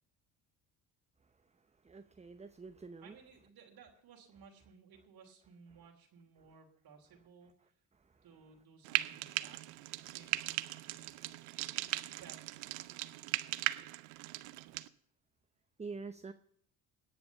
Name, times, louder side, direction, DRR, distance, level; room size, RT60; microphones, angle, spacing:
voice 1, 1.8-3.1 15.8-16.3, right 4 dB, 15° right, 10 dB, 0.8 m, -46 dB
voice 2, 3.0-7.7 8.2-9.6 10.0-10.8 11.5-12.6, right 5 dB, 65° right, 0 dB, 2.9 m, -59 dB
Frying (food), 8.8-14.9, right 19 dB, 85° right, 0.7 m, -38 dB
18.5 x 7.0 x 6.9 m, 0.63 s
supercardioid pair, 70°, 40 cm